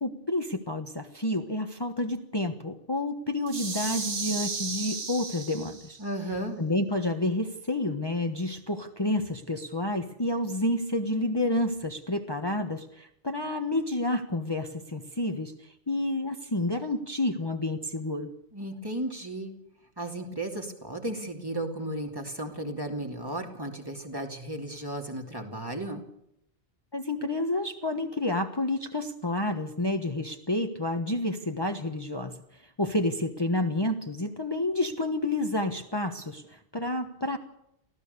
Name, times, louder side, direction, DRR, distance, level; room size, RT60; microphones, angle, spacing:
voice 1, 0.0-6.0 6.6-18.3 26.9-37.4, left 1 dB, 25° left, 5 dB, 1.3 m, -29 dB
sound 1, 3.5-6.0, right 4 dB, 70° right, 2.0 m, -34 dB
voice 2, 6.0-6.6 18.5-19.5 20.0-26.0, right 1 dB, 20° right, 3 dB, 2.8 m, -34 dB
24.5 x 16.0 x 6.8 m, 0.79 s
omnidirectional pair, 1.1 m